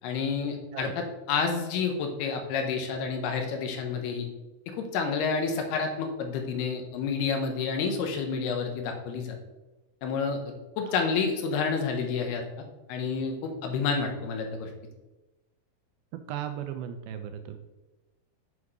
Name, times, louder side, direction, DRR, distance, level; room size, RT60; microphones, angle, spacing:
voice 1, 0.0-4.3 4.7-9.4 10.0-14.7, left 5 dB, 90° left, 4 dB, 3.0 m, -29 dB
voice 2, 16.3-17.6, right 9 dB, 80° right, 7 dB, 2.3 m, -36 dB
8.1 x 4.9 x 4.8 m, 1.1 s
omnidirectional pair, 4.5 m